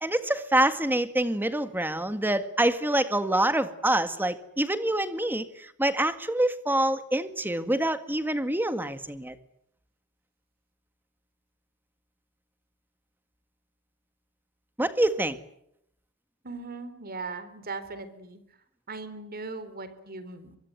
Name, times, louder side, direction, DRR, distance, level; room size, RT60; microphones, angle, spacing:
voice 1, 0.0-9.3 14.8-15.4, right 1 dB, 10° right, 10 dB, 1.8 m, -26 dB
voice 2, 16.4-18.4 18.9-20.6, right 3 dB, 45° right, 12 dB, 3.8 m, -39 dB
24.5 x 23.5 x 9.3 m, 0.73 s
head